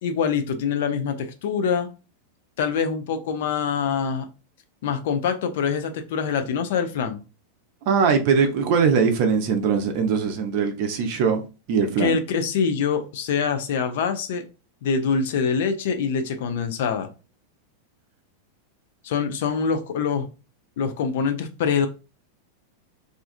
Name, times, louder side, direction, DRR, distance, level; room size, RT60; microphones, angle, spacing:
voice 1, 0.0-1.9 2.6-4.3 4.8-7.2 12.0-14.5 14.8-17.1 19.0-20.3 20.8-21.9, left 6 dB, 55° left, 0.4 m, -24 dB
voice 2, 7.9-11.4 11.7-12.2, right 6 dB, 45° right, 0.5 m, -21 dB
2.5 x 2.3 x 2.4 m
figure-of-eight pair, 90°, 0 cm